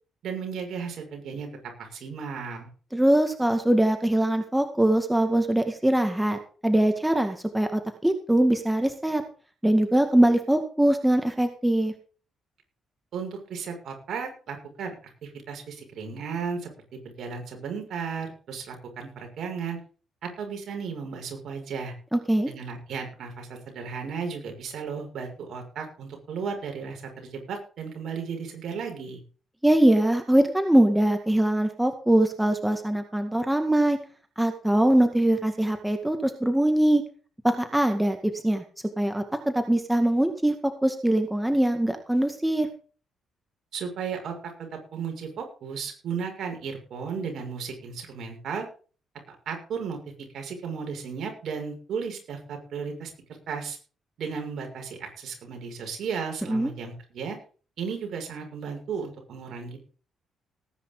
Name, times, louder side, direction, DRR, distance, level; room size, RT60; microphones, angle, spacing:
voice 1, 0.2-1.5 1.8-2.7 13.1-15.0 15.2-19.8 20.2-21.9 22.5-29.2 43.7-48.7 49.3-50.0 50.3-53.8 54.2-57.4 57.8-59.8, right 6 dB, 65° right, 3 dB, 6.3 m, -35 dB
voice 2, 2.9-9.2 9.6-11.9 22.1-22.5 29.6-34.0 34.4-37.0 37.4-38.6 39.0-40.5 40.8-42.7 56.5-56.7, right 1 dB, 5° right, 6 dB, 2.1 m, -22 dB
19.0 x 10.0 x 4.0 m, 0.39 s
cardioid pair, 90°, 0 cm